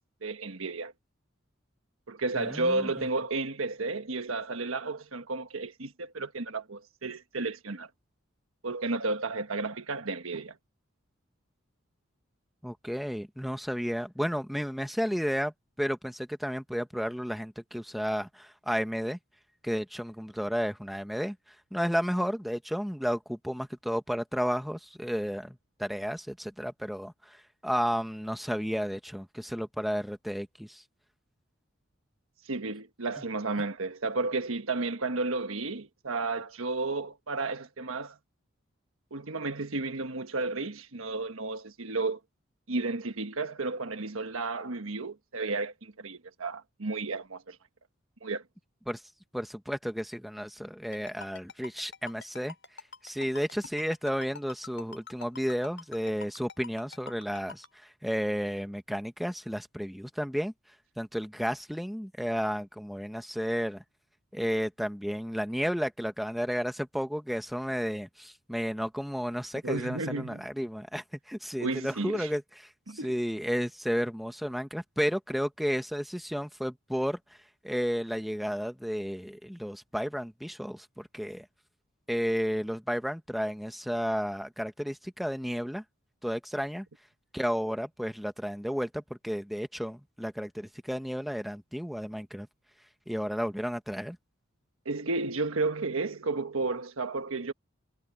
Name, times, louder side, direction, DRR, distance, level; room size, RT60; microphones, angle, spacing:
voice 1, 0.2-0.9 2.1-7.9 8.6-10.5 32.4-38.2 39.1-42.2 42.7-47.6 48.2-48.4 69.6-70.4 71.6-72.3 72.9-73.1 94.8-97.5, right 3 dB, 90° right, 1.3 m, -32 dB
voice 2, 2.4-2.9 12.6-15.5 15.8-19.2 19.6-21.3 21.7-30.8 48.9-49.0 49.3-52.5 53.0-57.6 58.0-60.5 61.0-63.8 64.3-72.4 72.9-77.2 77.6-81.4 82.1-85.8 86.2-86.8 87.3-92.5 93.1-94.2, equal, ahead, 1.4 m, -32 dB
Ringtone, 50.9-57.7, left 4 dB, 60° left, 6.2 m, -44 dB
head